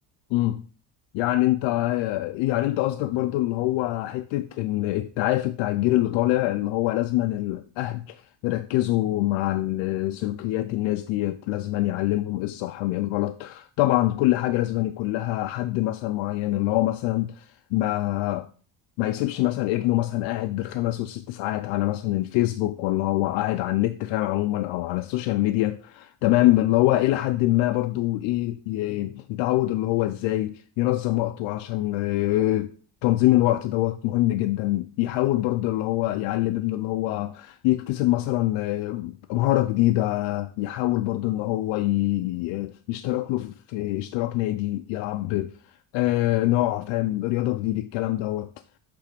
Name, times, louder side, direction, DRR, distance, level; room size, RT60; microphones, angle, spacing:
voice 1, 0.3-0.6 1.1-18.5 19.0-32.7 33.0-45.5 45.9-48.5, left 16 dB, 75° left, 0.5 m, -25 dB
8.3 x 3.4 x 5.0 m
cardioid pair, 175°, 45 cm